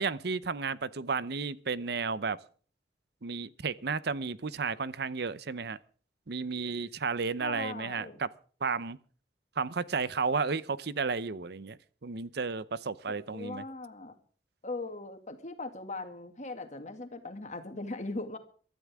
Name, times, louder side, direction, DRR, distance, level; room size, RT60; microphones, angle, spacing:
voice 1, 0.0-2.4 3.2-5.8 6.3-8.3 8.6-9.0 9.6-13.6, right 4 dB, 65° right, 0.8 m, -33 dB
voice 2, 7.4-8.2 13.1-14.2 14.6-18.4, left 2 dB, 45° left, 2.3 m, -39 dB
23.0 x 13.0 x 3.6 m
head